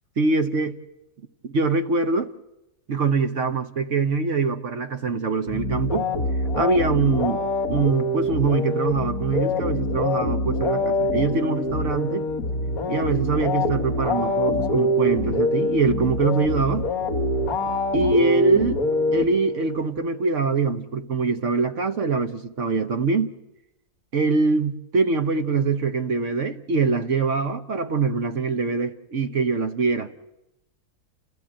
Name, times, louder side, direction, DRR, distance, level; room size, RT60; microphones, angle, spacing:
voice 1, 0.2-0.7 1.4-2.3 2.9-6.1 6.6-7.4 7.7-12.2 12.9-16.9 17.9-18.8 19.1-23.3 24.1-30.1, right 4 dB, 55° right, 1.3 m, -23 dB
sound 1, 5.5-19.8, left 1 dB, 65° left, 2.3 m, -25 dB
29.5 x 14.5 x 8.8 m
omnidirectional pair, 1.6 m